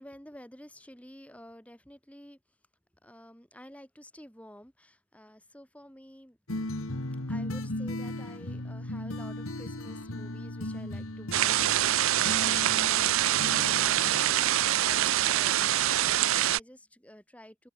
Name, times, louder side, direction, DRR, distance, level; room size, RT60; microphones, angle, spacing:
voice 1, 0.0-2.6 3.0-6.4 7.3-17.7, equal, 5° left, 3.8 m, -51 dB
sound 1, 6.5-14.9, left 1 dB, 70° left, 2.3 m, -37 dB
sound 2, 11.3-16.6, right 12 dB, 65° right, 0.5 m, -25 dB
head